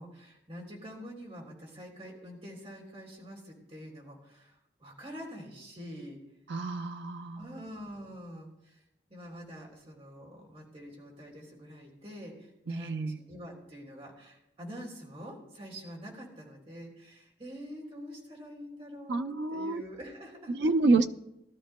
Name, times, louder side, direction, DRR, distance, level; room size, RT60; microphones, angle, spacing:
voice 1, 0.0-6.2 7.3-8.8 9.1-20.5, equal, 35° right, -2 dB, 3.3 m, -46 dB
voice 2, 6.5-7.4 12.7-13.2 19.1-19.8 20.5-21.1, right 3 dB, 75° right, 8 dB, 0.5 m, -28 dB
19.5 x 12.5 x 2.2 m, 0.86 s
head